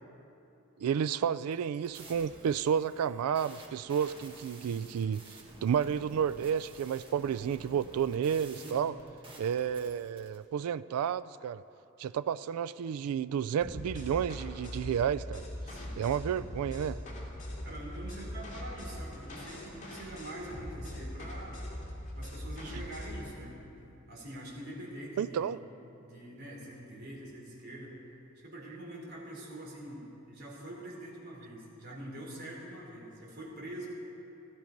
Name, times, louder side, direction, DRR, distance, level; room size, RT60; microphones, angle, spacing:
voice 1, 0.8-5.2 5.6-8.9 9.4-11.6 12.0-15.5 16.0-17.0 25.2-25.6, right 8 dB, 90° right, 15 dB, 0.3 m, -31 dB
sound 1, 1.4-10.4, right 2 dB, 25° right, 1.8 m, -52 dB
voice 2, 8.5-8.9 15.7-16.0 17.6-21.6 22.2-23.6 24.1-25.6 26.0-28.0 28.4-33.9, right 1 dB, 50° right, -3 dB, 3.8 m, -45 dB
sound 2, 13.6-23.3, left 1 dB, 35° left, 2.6 m, -41 dB
16.5 x 12.5 x 5.2 m, 2.8 s
head